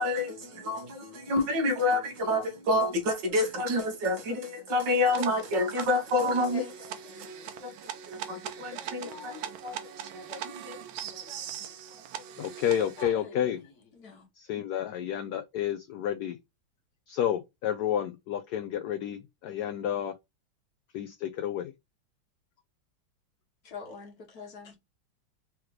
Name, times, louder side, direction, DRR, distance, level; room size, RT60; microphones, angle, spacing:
voice 1, 0.0-6.7 7.1-10.8 11.1-11.4 11.9-12.0, left 2 dB, 65° right, 2.0 m, -29 dB
sound 1, 5.1-13.0, right 9 dB, 85° right, 1.6 m, -41 dB
voice 2, 6.2-6.7 8.7-9.5 11.6-11.7 13.0-13.5 13.9-14.3 23.6-24.7, left 3 dB, 55° left, 1.7 m, -45 dB
voice 3, 12.4-13.6 14.4-16.4 17.1-20.1 20.9-21.7, left 10 dB, 75° left, 0.9 m, -30 dB
4.9 x 3.1 x 3.1 m
omnidirectional pair, 2.2 m